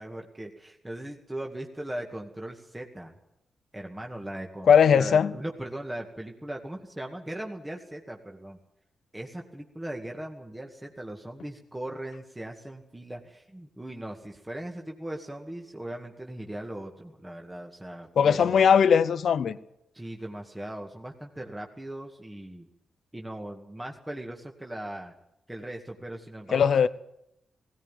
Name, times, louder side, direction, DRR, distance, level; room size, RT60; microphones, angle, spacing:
voice 1, 0.0-3.1 3.7-8.6 9.1-18.8 19.9-22.7 23.1-25.1 25.5-26.9, right 1 dB, 15° right, 2.2 m, -39 dB
voice 2, 4.7-5.3 18.2-19.6 26.5-26.9, left 7 dB, 75° left, 0.7 m, -19 dB
17.0 x 16.5 x 9.2 m
cardioid pair, 55°, 0 cm